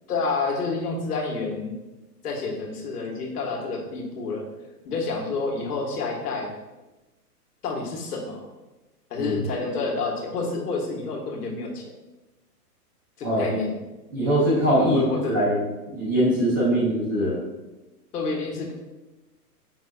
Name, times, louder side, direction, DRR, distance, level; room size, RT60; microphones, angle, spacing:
voice 1, 0.1-1.8 2.2-4.5 4.8-6.5 7.6-8.5 9.1-11.8 13.2-13.8 14.8-15.4 18.1-18.7, left 3 dB, 75° left, 0 dB, 1.8 m, -29 dB
voice 2, 13.2-13.6 14.1-15.0 15.3-15.6 15.9-17.4, right 1 dB, 15° right, -9 dB, 0.5 m, -22 dB
6.5 x 6.0 x 2.5 m, 1.1 s
hypercardioid pair, 170°, 47 cm